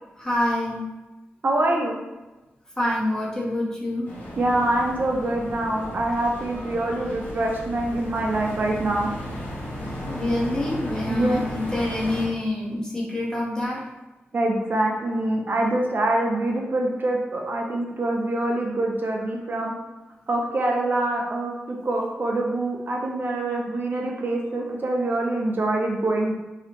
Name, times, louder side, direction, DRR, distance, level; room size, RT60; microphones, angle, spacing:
voice 1, 0.2-0.8 2.8-4.1 10.0-13.8, left 1 dB, 15° left, -5 dB, 0.7 m, -26 dB
voice 2, 1.4-2.0 4.4-9.1 11.1-11.4 14.3-19.7 20.3-26.3, right 2 dB, 50° right, -1 dB, 0.4 m, -25 dB
sound 1, 4.1-12.3, equal, 55° left, 1.0 m, -35 dB
2.8 x 2.0 x 2.8 m, 1.1 s
wide cardioid pair, 100°, 4 cm